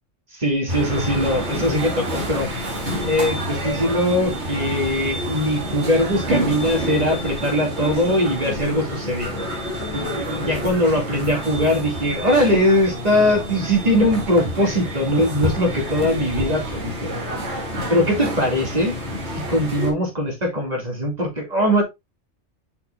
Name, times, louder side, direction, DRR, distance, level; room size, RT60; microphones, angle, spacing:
voice 1, 0.3-2.5 2.9-9.3 9.9-17.6 17.9-18.9 19.4-21.8, left 1 dB, 35° right, 2.6 m, -21 dB
sound 1, 0.7-19.9, equal, 75° right, 2.4 m, -28 dB
7.8 x 5.8 x 2.5 m
omnidirectional pair, 1.2 m